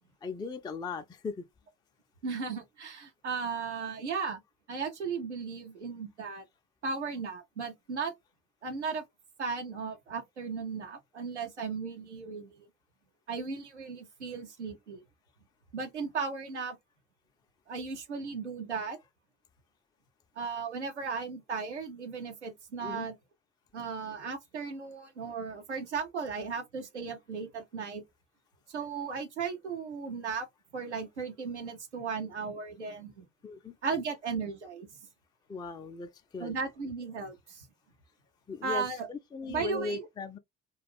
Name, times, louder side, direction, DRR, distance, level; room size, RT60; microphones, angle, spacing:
voice 1, 0.2-1.5 22.8-23.1 33.4-33.8 35.5-36.5 38.5-40.4, left 4 dB, 15° left, 0.4 m, -38 dB
voice 2, 2.2-4.4 4.7-6.4 6.8-8.1 8.6-9.0 9.4-12.7 13.3-15.0 15.7-16.8 17.7-19.0 20.4-23.2 23.7-28.0 28.7-30.5 30.7-33.3 33.8-34.9 36.4-37.7 38.6-39.1 39.5-40.1, right 5 dB, 90° right, 0.5 m, -36 dB
2.3 x 2.2 x 3.3 m
figure-of-eight pair, 50°, 33 cm